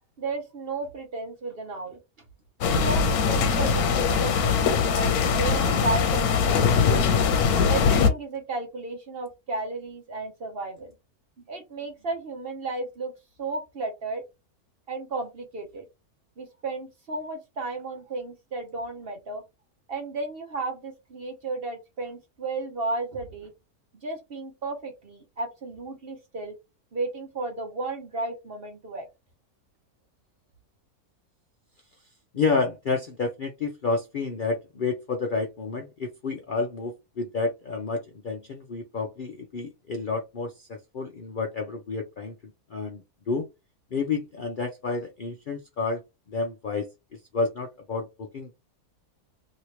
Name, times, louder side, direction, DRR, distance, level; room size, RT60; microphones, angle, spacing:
voice 1, 0.2-2.0 2.6-6.6 6.9-7.1 7.6-10.9 11.5-13.1 13.4-14.2 14.9-15.9 16.4-19.4 19.9-23.5 24.0-26.5 26.9-29.1, right 3 dB, 50° right, 4 dB, 0.8 m, -33 dB
sound 1, 2.6-8.1, left 6 dB, 90° left, 1.2 m, -22 dB
voice 2, 32.3-42.3 42.7-43.5 43.9-46.0 46.3-48.6, left 4 dB, 55° left, 2 dB, 0.5 m, -30 dB
3.1 x 2.8 x 2.8 m, 0.23 s
omnidirectional pair, 1.6 m